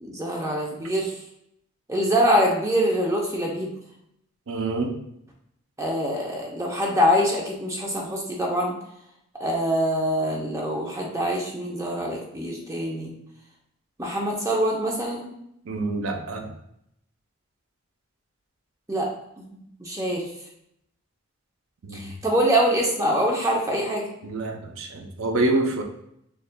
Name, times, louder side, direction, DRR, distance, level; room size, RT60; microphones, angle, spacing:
voice 1, 0.0-1.1 1.9-3.7 5.8-8.8 9.4-13.1 14.0-15.3 18.9-19.1 19.4-20.3 21.9-24.1, equal, 15° right, -1 dB, 0.6 m, -24 dB
voice 2, 4.5-5.0 15.7-16.5 21.8-22.1 24.2-25.8, right 2 dB, 75° right, 3 dB, 0.6 m, -26 dB
6.6 x 2.4 x 2.2 m, 0.77 s
head